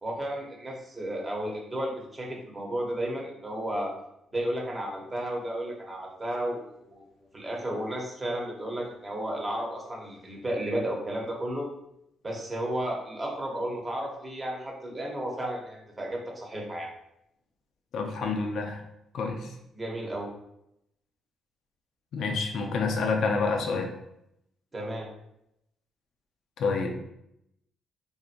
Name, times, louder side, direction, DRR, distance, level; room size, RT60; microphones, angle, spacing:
voice 1, 0.0-3.9 4.3-7.0 7.3-11.7 12.2-16.9 19.7-20.3 24.7-25.1, right 1 dB, 25° right, -1 dB, 0.9 m, -33 dB
voice 2, 17.9-18.8 19.1-19.5 22.1-23.9 26.6-27.0, left 4 dB, 70° left, 3 dB, 0.6 m, -28 dB
3.7 x 2.7 x 2.6 m, 0.80 s
cardioid pair, 90°, 0 cm